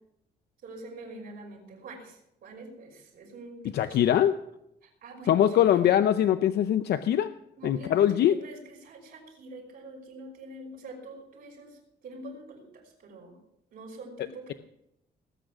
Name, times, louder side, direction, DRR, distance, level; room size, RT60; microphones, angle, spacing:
voice 1, 0.6-4.1 4.8-5.4 5.7-5.8 7.6-8.1 8.4-11.8 12.0-13.3 13.7-14.5, right 1 dB, 65° right, 0 dB, 5.7 m, -45 dB
voice 2, 3.7-4.4 5.3-7.3 7.6-8.4, left 10 dB, 75° left, 11 dB, 0.6 m, -22 dB
19.5 x 8.8 x 6.2 m, 0.80 s
wide cardioid pair, 170°, 17 cm